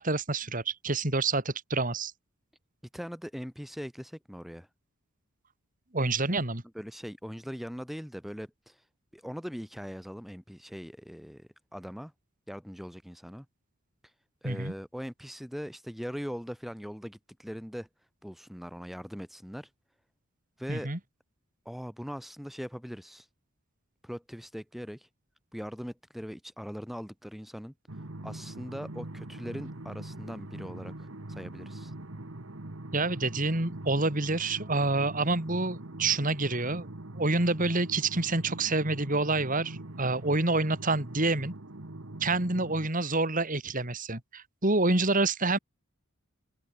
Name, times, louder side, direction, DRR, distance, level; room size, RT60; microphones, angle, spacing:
voice 1, 0.0-2.1 5.9-6.6 14.4-14.7 20.7-21.0 32.9-36.9 37.2-41.5 42.2-45.6, right 2 dB, 40° right, 3.0 m, -27 dB
voice 2, 2.9-4.7 6.7-8.8 9.1-12.1 12.5-13.5 14.4-17.9 18.2-19.7 20.6-20.9 21.7-23.3 24.0-25.1 25.5-27.7 28.2-31.9, equal, ahead, 2.4 m, -40 dB
sound 1, 27.9-42.9, right 1 dB, 65° right, 1.7 m, -42 dB
open air
head